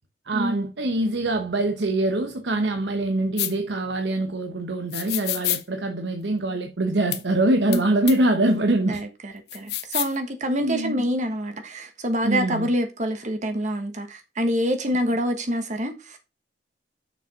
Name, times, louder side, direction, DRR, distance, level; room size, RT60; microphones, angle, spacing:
voice 1, 0.3-9.0 10.6-11.1 12.2-12.7, right 2 dB, 80° right, 1.0 m, -24 dB
sound 1, 3.4-3.5 4.9-5.6 7.1-7.2 7.7-7.8 8.1-8.2 9.5-10.2, left 13 dB, 65° left, 0.8 m, -27 dB
voice 2, 8.9-16.2, equal, 45° right, 1.3 m, -26 dB
6.6 x 5.1 x 5.5 m
head